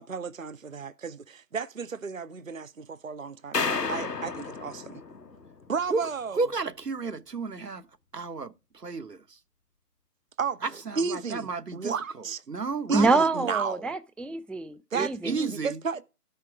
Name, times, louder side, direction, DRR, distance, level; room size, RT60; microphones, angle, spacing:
voice 1, 0.0-5.0 5.7-6.5 10.4-12.4 12.9-13.9 14.9-16.0, right 5 dB, 55° right, 0.6 m, -33 dB
sound 1, 3.5-5.9, left 4 dB, 90° left, 1.1 m, -32 dB
voice 2, 6.4-7.8 8.1-8.5 8.8-9.2 10.9-11.9 12.5-13.2 14.9-15.8, right 4 dB, 85° right, 1.1 m, -32 dB
voice 3, 12.9-15.3, right 3 dB, ahead, 0.4 m, -26 dB
12.0 x 5.7 x 4.8 m
figure-of-eight pair, 175°, 47 cm